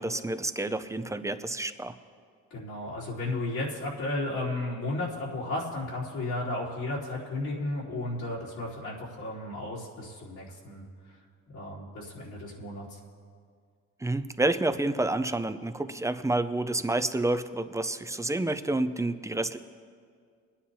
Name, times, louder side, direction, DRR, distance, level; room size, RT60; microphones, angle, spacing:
voice 1, 0.0-1.9 14.0-19.6, right 2 dB, 10° right, 10 dB, 0.5 m, -29 dB
voice 2, 2.5-10.8 11.5-13.0, left 2 dB, 75° left, -8 dB, 3.6 m, -34 dB
22.5 x 10.0 x 2.8 m, 2.1 s
cardioid pair, 90°, 30 cm